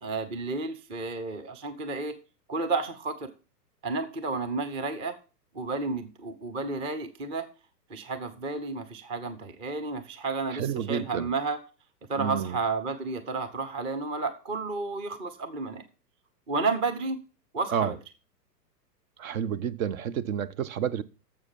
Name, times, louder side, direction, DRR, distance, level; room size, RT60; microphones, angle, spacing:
voice 1, 0.0-2.2 2.5-3.3 3.8-5.2 5.5-7.5 7.9-11.6 12.1-15.8 16.5-17.2 17.5-18.0, right 3 dB, 10° right, 0.5 m, -31 dB
voice 2, 10.5-11.3 12.2-12.6 17.7-17.9 19.2-21.0, right 8 dB, 55° right, 0.7 m, -30 dB
7.3 x 6.2 x 7.4 m
figure-of-eight pair, 110°, 49 cm